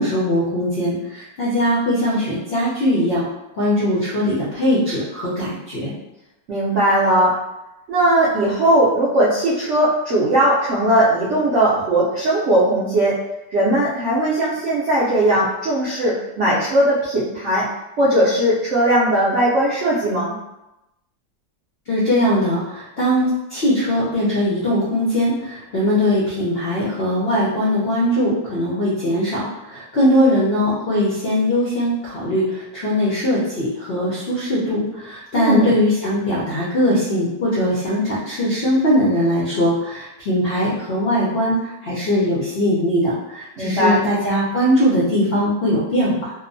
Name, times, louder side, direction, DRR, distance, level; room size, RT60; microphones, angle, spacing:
voice 1, 0.0-3.3 3.6-5.9 21.9-46.3, equal, 75° left, -7 dB, 0.5 m, -20 dB
voice 2, 6.5-7.4 7.9-13.2 13.5-17.7 18.0-20.4 35.3-35.8 43.6-44.0, right 1 dB, 70° right, -8 dB, 0.7 m, -18 dB
2.8 x 2.0 x 2.5 m, 0.94 s
omnidirectional pair, 1.8 m